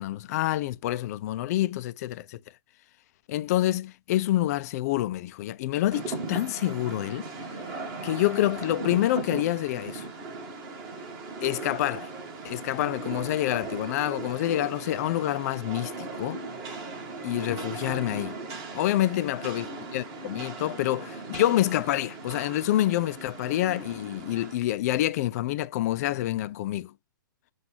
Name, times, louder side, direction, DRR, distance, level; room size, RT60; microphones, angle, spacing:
voice 1, 0.0-2.4 3.3-7.3 8.0-10.1 11.4-12.1 12.4-16.4 17.2-18.4 18.7-26.9, left 14 dB, 45° left, 0.6 m, -27 dB
Rain, 5.9-24.6, right 3 dB, 35° right, 2.2 m, -38 dB
7.8 x 2.6 x 5.6 m
hypercardioid pair, 135°, 12 cm